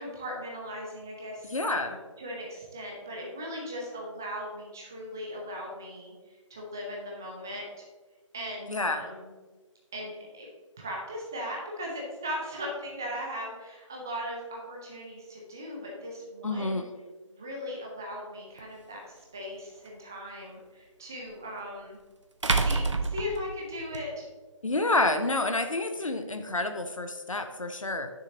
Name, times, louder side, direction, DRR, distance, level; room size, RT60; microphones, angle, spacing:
voice 1, 0.0-6.1 6.5-7.8 8.3-9.3 9.9-10.5 10.8-16.9 17.3-22.0 22.4-24.3, equal, 5° right, -2 dB, 0.3 m, -38 dB
voice 2, 1.5-2.0 8.7-9.1 16.4-16.9 24.6-28.1, left 2 dB, 80° left, 7 dB, 0.9 m, -29 dB
sound 1, 18.6-18.7 21.3-21.4 22.4-24.0, right 3 dB, 65° right, 0.8 m, -27 dB
9.0 x 6.5 x 2.7 m, 1.3 s
figure-of-eight pair, 150°, 17 cm